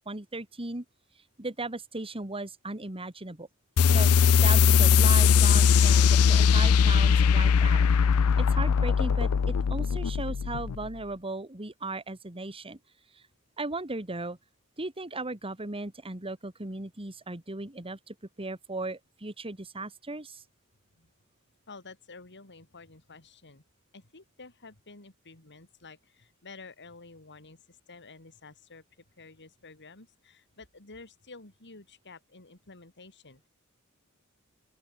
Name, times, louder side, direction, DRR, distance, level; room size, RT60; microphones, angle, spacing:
voice 1, 0.1-0.8 1.4-3.5 3.9-7.9 8.4-12.8 13.6-14.4 14.8-20.4, right 2 dB, 25° right, 2.1 m, -37 dB
sound 1, 3.8-10.9, left 6 dB, 70° left, 0.5 m, -21 dB
voice 2, 21.7-23.6 23.9-28.8 29.2-33.5, left 3 dB, 55° left, 3.9 m, -50 dB
open air
head